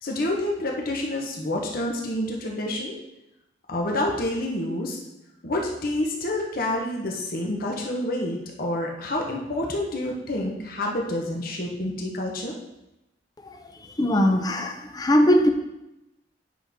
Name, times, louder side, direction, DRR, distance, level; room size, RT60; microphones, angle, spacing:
voice 1, 0.0-3.0 3.7-5.0 5.4-12.5, left 1 dB, 55° left, 0 dB, 1.2 m, -28 dB
voice 2, 13.4-15.5, equal, 20° left, 5 dB, 0.7 m, -21 dB
8.4 x 5.9 x 3.6 m, 0.90 s
head